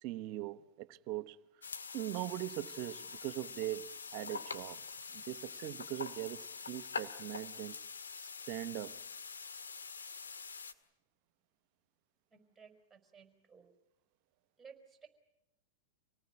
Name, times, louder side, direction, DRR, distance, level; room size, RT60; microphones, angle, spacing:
voice 1, 0.0-1.4 1.9-4.8 5.1-7.8 8.5-9.0, right 16 dB, 50° right, 1.0 m, -41 dB
sound 1, 1.6-10.7, left 5 dB, 85° left, 1.8 m, -45 dB
voice 2, 12.3-13.7 14.6-15.1, right 6 dB, 10° right, 5.6 m, -57 dB
27.0 x 18.5 x 9.5 m
hypercardioid pair, 100°, 0 cm